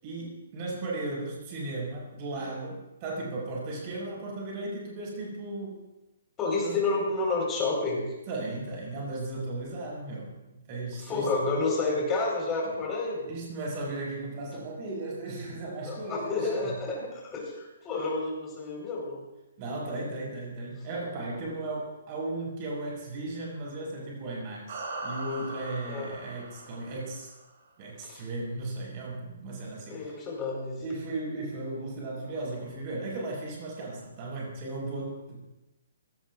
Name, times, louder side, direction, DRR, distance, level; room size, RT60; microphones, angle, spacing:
voice 1, 0.0-5.8 6.6-6.8 8.3-11.5 12.6-12.8 13.2-16.7 19.6-27.3 27.8-30.2 30.8-35.4, right 2 dB, 25° right, -3 dB, 6.2 m, -36 dB
voice 2, 6.4-8.1 11.1-13.3 15.8-19.2 25.9-26.2 28.0-28.2 29.9-30.7, left 3 dB, 15° left, -2 dB, 4.5 m, -30 dB
sound 1, 24.7-27.4, right 2 dB, 50° right, 5.9 m, -40 dB
27.0 x 18.0 x 2.5 m, 1.0 s
hypercardioid pair, 175°, 0 cm